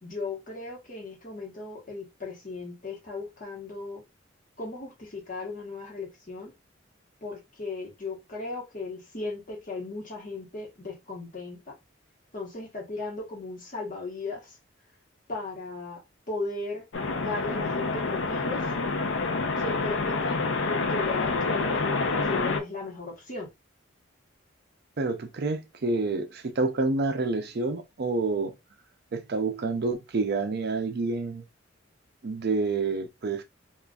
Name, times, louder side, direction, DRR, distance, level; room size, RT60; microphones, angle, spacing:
voice 1, 0.0-4.0 4.6-6.5 7.2-11.8 12.3-14.6 15.3-16.0 16.3-16.9 17.2-18.7 19.6-23.5, left 3 dB, 40° left, 1.1 m, -36 dB
sound 1, 16.9-22.6, left 3 dB, 65° left, 0.5 m, -28 dB
voice 2, 25.0-28.5 29.1-31.4 32.2-33.4, right 3 dB, 55° right, 0.5 m, -28 dB
3.7 x 2.4 x 2.3 m
head